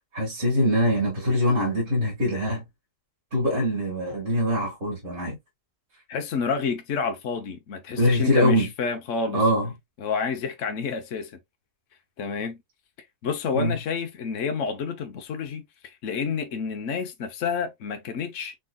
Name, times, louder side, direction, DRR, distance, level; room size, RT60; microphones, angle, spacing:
voice 1, 0.1-2.6 3.3-5.4 8.0-8.7 9.3-9.7 13.5-13.8, equal, 50° right, 2.2 m, -23 dB
voice 2, 6.1-9.4 10.0-11.3 12.2-12.6 13.2-18.6, left 5 dB, 65° left, 1.2 m, -29 dB
5.0 x 3.9 x 2.2 m
omnidirectional pair, 1.4 m